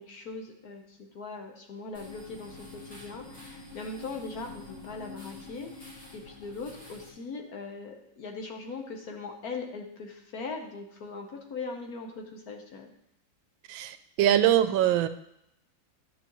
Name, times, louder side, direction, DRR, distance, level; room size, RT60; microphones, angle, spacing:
voice 1, 0.0-12.9, left 4 dB, 55° left, 2 dB, 1.4 m, -40 dB
sound 1, 1.9-7.1, left 3 dB, 35° left, 3.1 m, -47 dB
voice 2, 13.7-15.1, right 11 dB, 90° right, 11 dB, 1.4 m, -23 dB
11.0 x 6.8 x 3.1 m, 0.77 s
omnidirectional pair, 2.1 m